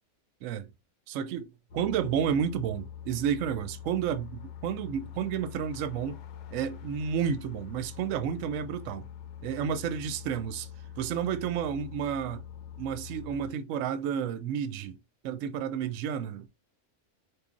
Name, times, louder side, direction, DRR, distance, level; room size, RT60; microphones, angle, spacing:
voice 1, 1.1-6.2 6.5-9.1 9.4-10.7 11.0-12.4 12.8-15.0 15.2-16.5, right 8 dB, 70° right, 0.9 m, -31 dB
sound 1, 1.7-13.5, left 9 dB, 65° left, 0.8 m, -44 dB
4.7 x 2.6 x 2.4 m
omnidirectional pair, 1.4 m